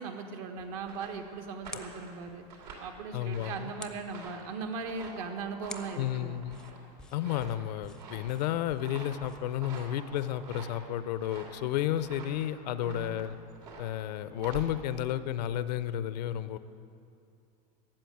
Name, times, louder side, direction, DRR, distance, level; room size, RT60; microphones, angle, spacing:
voice 1, 0.0-2.4 2.8-6.4 12.8-13.3, right 4 dB, 65° right, 5 dB, 1.4 m, -39 dB
sound 1, 0.6-10.6, left 2 dB, 5° left, 0.6 m, -53 dB
sound 2, 0.6-15.9, right 4 dB, 85° right, 2.9 m, -48 dB
voice 2, 3.1-3.7 6.0-6.6 7.1-13.4 13.8-16.6, left 11 dB, 80° left, 14 dB, 0.6 m, -32 dB
13.5 x 7.7 x 9.2 m, 2.6 s
supercardioid pair, 145°, 21 cm